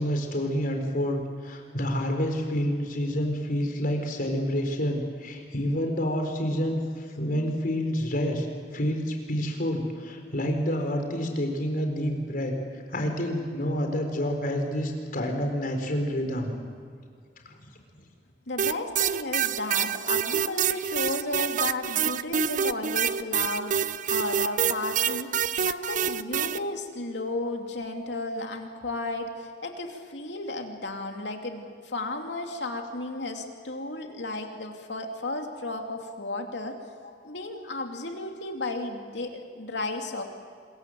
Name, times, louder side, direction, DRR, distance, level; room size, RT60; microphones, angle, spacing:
voice 1, 0.0-8.5 8.7-12.5 12.9-16.5, equal, 50° left, 3 dB, 4.4 m, -28 dB
voice 2, 18.5-36.8 37.2-40.2, left 2 dB, 70° left, 3 dB, 2.9 m, -33 dB
sound 1, 18.6-26.6, right 8 dB, 45° right, 0.6 m, -27 dB
26.0 x 22.5 x 7.9 m, 2.1 s
head